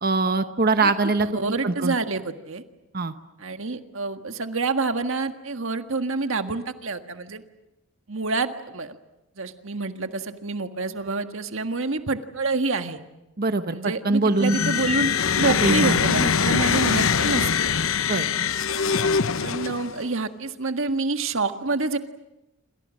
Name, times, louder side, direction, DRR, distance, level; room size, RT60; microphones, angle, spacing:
voice 1, 0.0-1.9 2.9-3.1 13.4-14.6 15.6-16.0 18.1-18.3, right 3 dB, 45° right, 9 dB, 1.0 m, -23 dB
voice 2, 1.3-2.6 3.4-7.4 8.1-9.0 9.4-13.0 13.7-17.7 19.4-22.0, right 3 dB, 65° right, 8 dB, 1.7 m, -27 dB
sound 1, 14.4-20.0, left 6 dB, 70° left, 0.9 m, -23 dB
28.0 x 26.5 x 6.4 m, 0.97 s
head